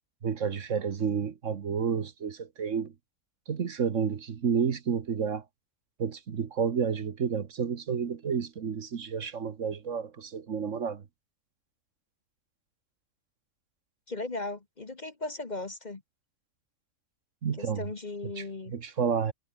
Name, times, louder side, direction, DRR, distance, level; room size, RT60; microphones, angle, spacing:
voice 1, 0.2-2.9 3.5-5.4 6.0-11.0 17.4-17.9 18.4-18.5 18.7-19.3, right 6 dB, 60° right, 1.6 m, -30 dB
voice 2, 14.1-16.0 17.6-18.7, left 2 dB, 30° left, 1.4 m, -37 dB
omnidirectional pair, 1.5 m